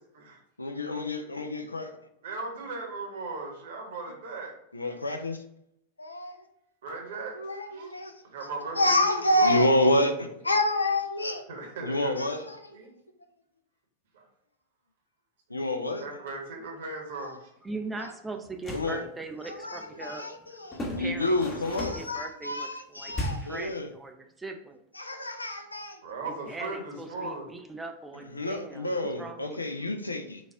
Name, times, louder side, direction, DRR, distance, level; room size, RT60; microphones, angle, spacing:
voice 1, 0.6-2.0 4.7-5.4 6.0-6.4 7.3-8.1 8.8-11.4 11.8-12.7 15.5-16.0 17.2-17.3 18.7-19.0 19.5-23.9 25.0-26.0 28.3-30.4, left 1 dB, 80° left, 6 dB, 0.4 m, -28 dB
voice 2, 2.2-4.5 4.8-5.0 6.8-7.4 7.7-8.0 8.2-9.1 9.3-9.6 11.5-12.1 12.7-12.9 14.1-14.2 16.0-17.5 26.0-27.5, right 3 dB, 60° right, 1 dB, 0.9 m, -37 dB
voice 3, 17.6-20.6 21.0-24.8 26.2-29.6, right 3 dB, 10° right, 4 dB, 0.3 m, -40 dB
sound 1, 18.4-19.0 20.7-22.2 23.1-23.6, left 1 dB, 20° left, 0.7 m, -35 dB
4.0 x 2.3 x 3.3 m, 0.77 s
figure-of-eight pair, 90°, 0 cm